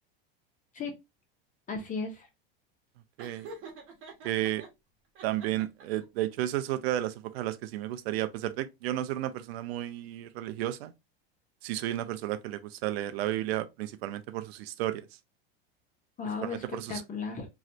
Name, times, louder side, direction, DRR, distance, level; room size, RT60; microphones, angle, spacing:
voice 1, 1.7-2.3 16.2-17.5, left 4 dB, 25° left, 1.0 m, -35 dB
Laughter, 3.2-4.7 5.1-6.0, right 3 dB, 45° right, 1.4 m, -46 dB
voice 2, 4.2-4.6 5.2-10.9 11.6-15.0 16.4-17.0, right 13 dB, 80° right, 0.5 m, -32 dB
3.1 x 2.5 x 2.8 m
supercardioid pair, 120°, 30 cm